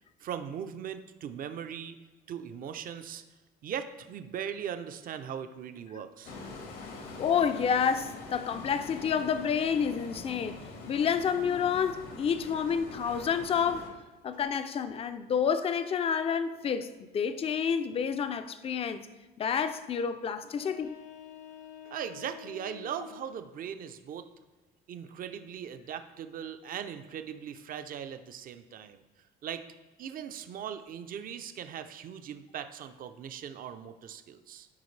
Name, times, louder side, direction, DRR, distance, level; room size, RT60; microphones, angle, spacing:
voice 1, 0.2-2.0 2.3-3.2 3.6-6.4 21.9-24.3 24.9-29.0 29.4-29.6 30.0-34.7, right 8 dB, 50° right, 0.6 m, -39 dB
sound 1, 6.2-13.9, left 3 dB, 85° left, 1.6 m, -44 dB
voice 2, 7.2-10.6 10.9-13.9 14.2-19.1 19.4-21.0, left 7 dB, 30° left, 0.5 m, -29 dB
sound 2, 20.5-23.5, left 10 dB, 60° left, 1.0 m, -48 dB
12.0 x 5.1 x 3.3 m
cardioid pair, 125°, 19 cm